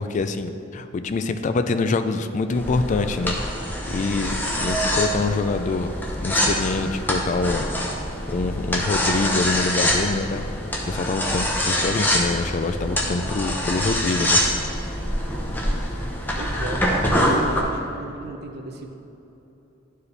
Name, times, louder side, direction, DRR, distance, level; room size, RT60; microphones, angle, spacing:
voice 1, 0.0-3.3 3.6-5.9 6.2-7.7 8.3-14.4, left 3 dB, 40° left, 9 dB, 0.3 m, -25 dB
sound 1, 2.5-17.6, equal, 10° left, 0.8 m, -25 dB
voice 2, 16.3-18.9, right 3 dB, 55° right, 4 dB, 0.6 m, -35 dB
11.0 x 4.7 x 3.3 m, 2.9 s
head